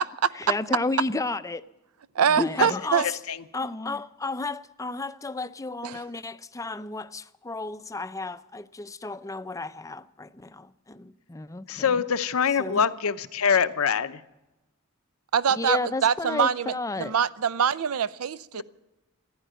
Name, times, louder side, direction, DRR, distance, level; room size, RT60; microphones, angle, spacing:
voice 1, 0.3-1.6 2.3-3.2 3.5-12.0 12.6-12.9 15.5-17.1, left 3 dB, 15° left, 0.5 m, -32 dB
voice 2, 2.2-3.1 5.8-6.0 15.3-18.6, right 7 dB, 85° right, 0.5 m, -24 dB
voice 3, 3.0-3.4 11.7-14.2, left 6 dB, 80° left, 0.7 m, -24 dB
15.0 x 10.5 x 9.1 m
head